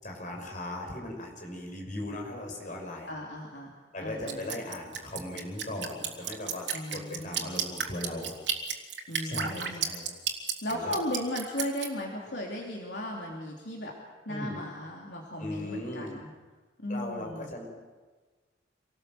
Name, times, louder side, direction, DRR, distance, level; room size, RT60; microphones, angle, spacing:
voice 1, 0.0-3.1 3.9-6.6 6.9-8.3 9.2-10.1 10.7-11.0 14.3-14.6 15.4-16.1 16.9-17.7, left 1 dB, 45° left, 1 dB, 6.2 m, -38 dB
voice 2, 3.1-4.6 6.7-7.5 9.1-9.9 10.6-14.0 14.2-16.3 16.8-17.5, left 1 dB, 70° left, -1 dB, 3.1 m, -36 dB
Drip, 4.3-11.9, right 7 dB, 85° right, 2.8 m, -32 dB
27.0 x 19.0 x 7.8 m, 1.3 s
head